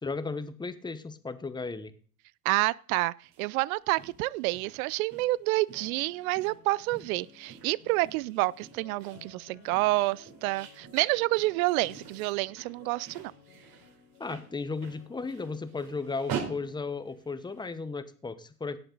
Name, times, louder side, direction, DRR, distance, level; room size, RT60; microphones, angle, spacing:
voice 1, 0.0-1.9 14.2-18.8, left 4 dB, 10° left, 13 dB, 1.0 m, -35 dB
voice 2, 2.4-13.3, right 20 dB, 60° right, 22 dB, 0.5 m, -28 dB
sound 1, 3.2-17.7, right 7 dB, 45° right, 3.8 m, -45 dB
sound 2, 5.7-16.0, left 8 dB, 85° left, 3.1 m, -56 dB
17.5 x 7.8 x 4.0 m, 0.43 s
hypercardioid pair, 95°, 47 cm